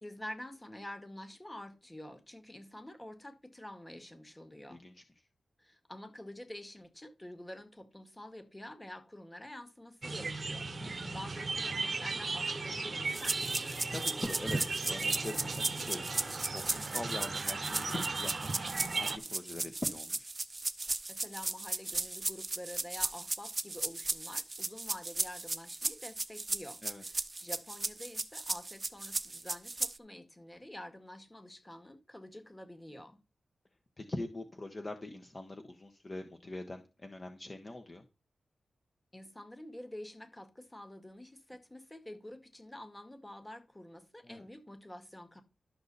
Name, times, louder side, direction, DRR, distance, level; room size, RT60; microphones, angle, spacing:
voice 1, 0.0-4.8 5.6-13.8 21.1-33.2 39.1-45.4, left 1 dB, 15° left, 2.0 m, -48 dB
voice 2, 4.7-5.0 10.8-11.1 13.9-20.3 26.8-27.0 34.0-38.0 44.2-44.4, left 2 dB, 35° left, 1.3 m, -43 dB
sound 1, 10.0-19.2, right 3 dB, 45° right, 1.0 m, -36 dB
sound 2, 13.1-30.0, right 2 dB, 25° right, 0.7 m, -36 dB
12.5 x 6.6 x 4.2 m
cardioid pair, 80°, 0 cm